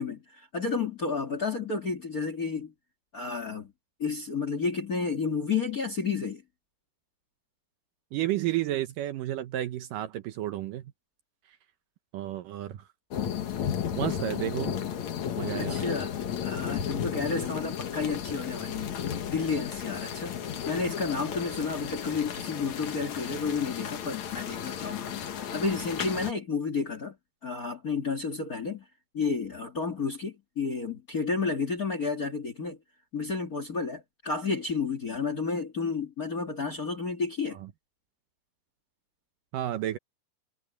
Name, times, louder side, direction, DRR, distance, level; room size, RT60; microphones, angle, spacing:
voice 1, 0.0-2.7 3.1-3.7 4.0-6.4 15.6-16.1 16.4-18.9 19.3-20.3 20.6-27.1 27.4-28.8 29.1-32.8 33.1-37.6, left 4 dB, 35° left, 1.5 m, -31 dB
voice 2, 8.1-10.9 12.1-12.9 14.0-14.8 15.4-15.8 39.5-40.0, right 13 dB, 75° right, 2.0 m, -31 dB
sound 1, 13.1-26.3, left 8 dB, 55° left, 2.5 m, -34 dB
omnidirectional pair, 4.8 m